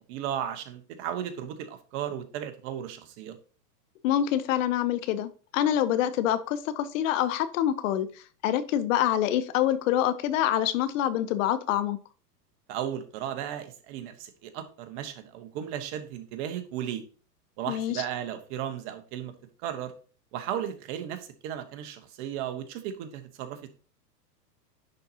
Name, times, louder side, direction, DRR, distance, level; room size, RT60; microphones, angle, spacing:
voice 1, 0.1-3.4 12.7-17.0 17.6-19.3 19.6-19.9 20.3-23.7, right 10 dB, 45° right, 9 dB, 1.2 m, -35 dB
voice 2, 4.0-12.0 17.7-18.0, left 11 dB, 50° left, 13 dB, 0.8 m, -26 dB
10.5 x 4.1 x 2.9 m, 0.39 s
hypercardioid pair, 120°, 49 cm